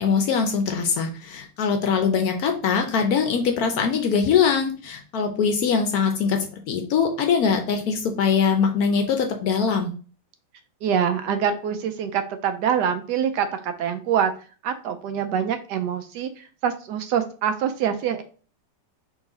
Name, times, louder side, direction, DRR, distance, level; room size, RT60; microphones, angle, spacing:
voice 1, 0.0-9.9, left 6 dB, 65° left, 5 dB, 1.0 m, -22 dB
voice 2, 10.8-14.3 14.6-18.2, right 8 dB, 75° right, 8 dB, 1.1 m, -25 dB
4.0 x 3.0 x 3.7 m, 0.38 s
omnidirectional pair, 1.9 m